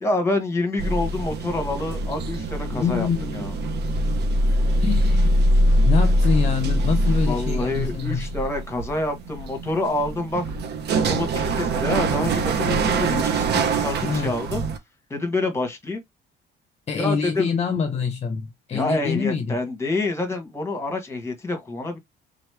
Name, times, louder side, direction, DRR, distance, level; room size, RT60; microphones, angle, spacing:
voice 1, 0.0-3.5 7.3-10.4 10.9-14.6 15.1-16.0 16.9-17.5 18.7-22.0, left 2 dB, 10° left, 1.3 m, -27 dB
sound 1, 0.8-14.8, right 1 dB, 55° right, 0.8 m, -23 dB
voice 2, 2.7-3.4 4.8-5.4 5.9-8.3 14.0-14.3 16.9-19.6, left 6 dB, 30° left, 0.7 m, -25 dB
3.9 x 3.0 x 3.3 m
cardioid pair, 155°, 21 cm